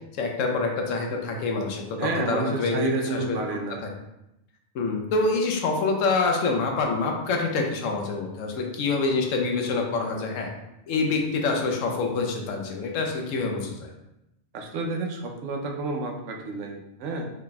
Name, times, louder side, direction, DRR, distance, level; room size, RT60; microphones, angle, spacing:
voice 1, 0.1-3.4 3.8-3.9 4.7-10.5 10.9-13.9, left 3 dB, 85° left, 2 dB, 1.0 m, -26 dB
voice 2, 2.0-3.8 14.5-17.3, right 3 dB, 70° right, 2 dB, 0.9 m, -30 dB
3.8 x 3.4 x 2.2 m, 0.89 s
omnidirectional pair, 1.3 m